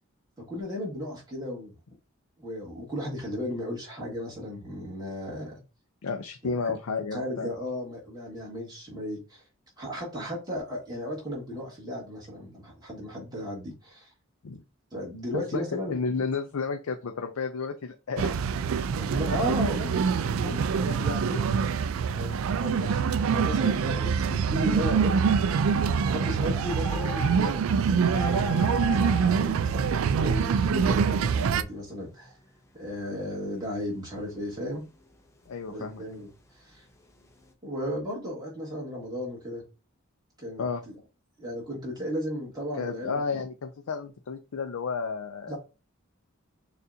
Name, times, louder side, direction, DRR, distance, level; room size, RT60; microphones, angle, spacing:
voice 1, 0.5-1.8 2.4-5.6 6.4-6.5 7.1-9.4 9.8-14.1 14.9-15.9 19.0-21.6 22.1-25.3 26.1-29.9 30.2-32.4 32.7-34.8 35.7-36.3 36.6-36.8 37.6-39.6 40.4-41.0 41.4-43.2 45.5-45.6, equal, 20° right, -4 dB, 1.8 m, -35 dB
voice 2, 6.0-7.5 14.4-14.6 15.3-18.4 35.5-36.0 40.6-40.8 42.8-45.5, left 5 dB, 90° left, 6 dB, 0.5 m, -32 dB
sound 1, 18.2-31.6, right 6 dB, 75° right, 0.3 m, -25 dB
sound 2, 25.5-30.1 30.6-31.3 31.6-31.7 31.9-32.4 32.7-37.5, left 2 dB, 15° left, 0.5 m, -40 dB
6.6 x 2.5 x 2.7 m, 0.30 s
head